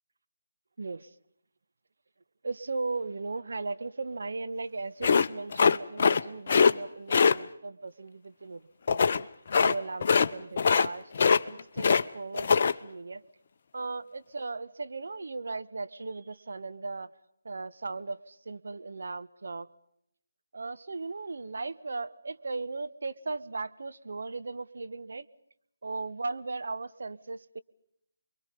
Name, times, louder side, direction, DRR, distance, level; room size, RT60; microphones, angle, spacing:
voice 1, 0.8-1.1 2.4-8.6 8.9-9.3 9.6-13.2 13.7-17.1 17.4-19.7 20.5-25.3 25.8-27.6, right 3 dB, 65° right, 11 dB, 1.3 m, -37 dB
sound 1, 5.0-6.2 6.5-6.7 7.1-7.4 8.9-9.2 9.5-9.7 10.0-10.3 10.6-10.9 11.1-12.0 12.3-12.7, left 5 dB, 45° left, 0.8 m, -22 dB
29.0 x 23.0 x 5.3 m, 0.75 s
figure-of-eight pair, 155°, 0 cm